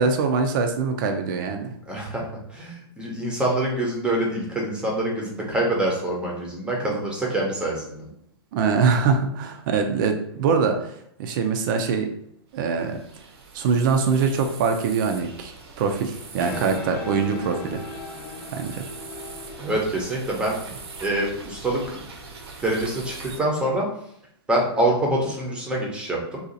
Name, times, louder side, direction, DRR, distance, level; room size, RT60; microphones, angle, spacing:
voice 1, 0.0-1.7 8.5-10.9 11.2-12.1 12.5-13.0 13.5-15.5 15.8-17.8 18.5-18.8, right 5 dB, 50° right, 5 dB, 0.4 m, -23 dB
voice 2, 1.9-8.0 19.6-20.5 21.0-22.0 22.6-23.9 24.5-26.4, right 1 dB, 5° right, -2 dB, 0.7 m, -25 dB
sound 1, 12.5-23.4, right 4 dB, 80° right, 0.8 m, -42 dB
sound 2, 16.1-23.3, left 5 dB, 35° left, 0.4 m, -40 dB
2.7 x 2.4 x 3.8 m, 0.71 s
hypercardioid pair, 145°, 14 cm